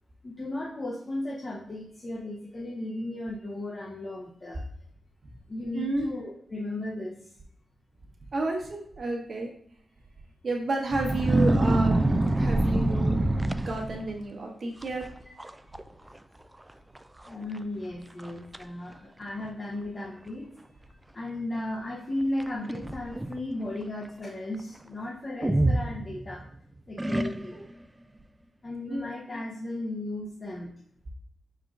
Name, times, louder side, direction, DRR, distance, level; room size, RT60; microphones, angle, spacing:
voice 1, 0.2-4.7 5.5-7.4 16.0-16.1 17.2-26.4 26.9-27.7 28.6-30.7, left 1 dB, 40° left, -3 dB, 0.9 m, -35 dB
voice 2, 5.7-6.1 8.3-9.5 10.4-13.2 13.5-15.0 28.9-29.1, right 2 dB, 55° right, 0 dB, 1.2 m, -31 dB
sound 1, 10.9-14.2 14.8-15.1 15.4-15.8 16.1-16.2 17.0-17.1 17.6-17.7 18.2-18.6 19.4-19.5 22.4-23.4 25.4-26.5 27.0-27.7, right 1 dB, 15° right, 0.3 m, -25 dB
4.8 x 4.5 x 2.4 m, 0.67 s
cardioid pair, 50°, 0 cm